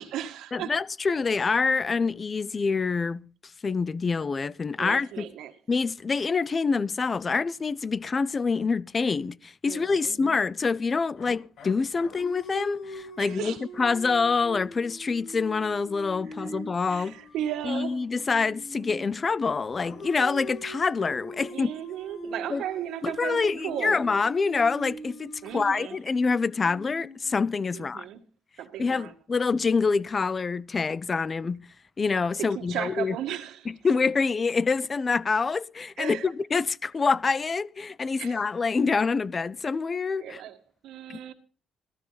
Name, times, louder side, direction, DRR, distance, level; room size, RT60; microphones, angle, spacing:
voice 1, 0.0-0.7 4.8-5.5 9.7-10.2 13.2-13.6 16.3-16.6 16.9-18.0 21.5-24.0 25.4-26.0 27.7-28.2 28.6-29.1 32.4-33.7 36.0-36.3 38.2-38.4 40.2-40.6 40.8-41.3, right 11 dB, 80° right, 1.8 m, -35 dB
voice 2, 0.5-3.2 3.6-5.3 5.7-17.2 17.6-21.7 22.5-22.6 23.0-28.0 28.8-31.6 32.0-33.2 33.7-40.4 41.1-41.3, left 4 dB, 35° left, 0.6 m, -26 dB
sound 1, 11.2-19.2 19.8-27.9, equal, 70° left, 4.4 m, -43 dB
16.0 x 12.5 x 4.0 m
cardioid pair, 90°, 0 cm